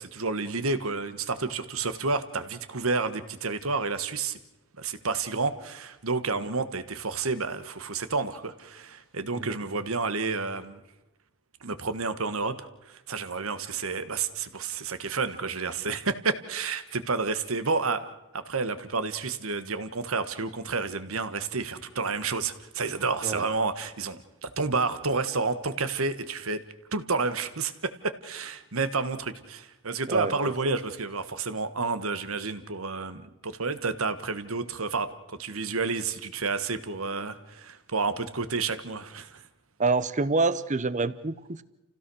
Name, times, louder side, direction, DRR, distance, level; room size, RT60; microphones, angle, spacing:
voice 1, 0.0-4.4 4.8-10.8 11.6-26.6 26.9-39.4, right 4 dB, 75° right, 11 dB, 1.5 m, -30 dB
voice 2, 30.1-30.5 39.8-41.6, right 3 dB, 35° right, 16 dB, 0.8 m, -27 dB
29.0 x 16.5 x 6.3 m, 0.96 s
head